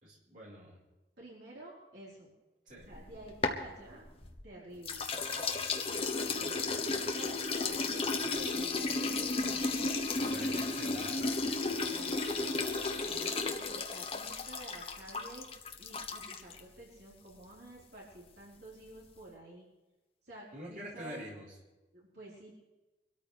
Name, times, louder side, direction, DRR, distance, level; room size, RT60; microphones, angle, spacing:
voice 1, 0.0-0.8 2.7-2.9 10.2-11.6 20.5-21.5, right 1 dB, 45° right, -5 dB, 4.7 m, -46 dB
voice 2, 1.2-2.3 2.8-4.1 4.4-5.1 5.8-9.7 10.2-10.7 11.7-15.5 15.8-19.7 20.2-21.2 21.9-22.5, right 1 dB, 65° right, -5 dB, 4.4 m, -51 dB
sound 1, 2.8-4.4 4.8-16.6, left 3 dB, 30° left, 1.0 m, -34 dB
24.5 x 13.0 x 3.4 m, 1.1 s
head